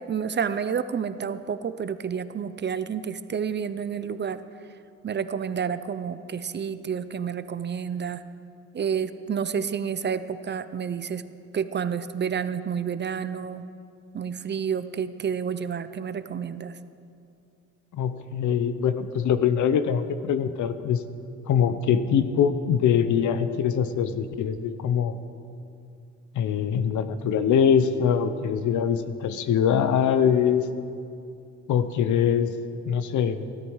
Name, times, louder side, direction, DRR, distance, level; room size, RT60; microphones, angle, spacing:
voice 1, 0.0-4.4 5.0-8.2 8.7-11.3 11.5-13.7 14.1-16.8, right 7 dB, 35° right, 12 dB, 0.6 m, -29 dB
voice 2, 17.9-21.0 21.5-25.2 26.3-30.7 31.7-32.5 32.9-33.4, left 8 dB, 75° left, 12 dB, 0.9 m, -23 dB
17.0 x 13.0 x 4.8 m, 2.5 s
cardioid pair, 90°, 30 cm